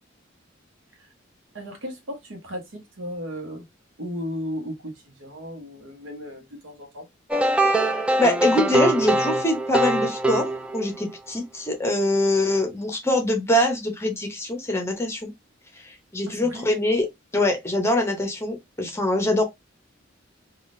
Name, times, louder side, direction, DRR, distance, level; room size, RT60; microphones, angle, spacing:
voice 1, 1.5-3.6 4.0-7.1 16.3-16.6, equal, 70° right, 1.0 m, -35 dB
sound 1, 7.3-11.1, right 2 dB, 5° right, 0.3 m, -23 dB
voice 2, 8.2-10.5 10.7-15.3 15.8-17.1 17.3-19.4, left 1 dB, 15° left, 0.7 m, -23 dB
3.5 x 2.4 x 2.5 m
head